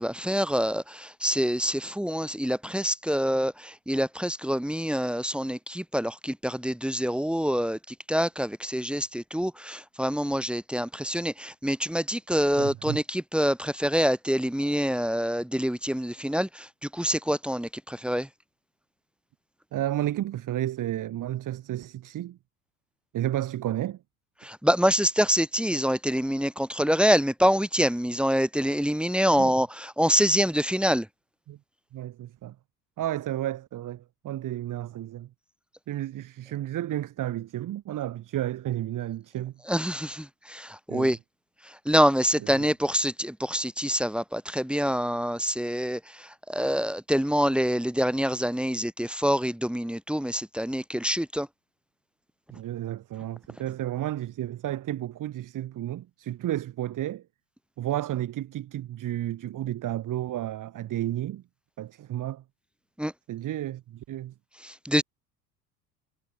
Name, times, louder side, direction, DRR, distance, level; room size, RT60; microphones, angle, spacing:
voice 1, 0.0-7.8 8.1-16.7 16.9-18.3 24.4-31.1 39.7-41.2 41.8-51.5 63.0-63.1 64.6-65.0, equal, ahead, 3.3 m, -26 dB
voice 2, 12.6-13.0 19.7-22.4 23.1-24.0 29.3-29.5 31.5-31.6 31.9-32.6 33.0-35.3 35.9-39.5 40.9-41.2 42.4-42.7 52.5-57.2 57.8-61.4 61.8-62.4 63.3-64.3, right 13 dB, 40° right, 7.6 m, -32 dB
figure-of-eight pair, 75°, 50 cm